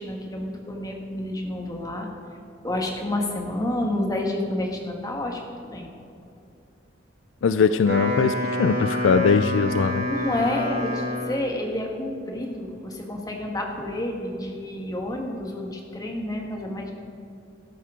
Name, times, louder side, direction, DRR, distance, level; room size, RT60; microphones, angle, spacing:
voice 1, 0.0-2.1 2.6-5.9 10.1-16.9, left 1 dB, 20° left, 1 dB, 1.4 m, -29 dB
voice 2, 7.4-10.0, left 5 dB, 75° left, 12 dB, 0.4 m, -21 dB
Wind instrument woodwind instrument, 7.7-11.6, left 1 dB, 55° right, 1.8 m, -28 dB
13.5 x 11.0 x 3.7 m, 2.6 s
head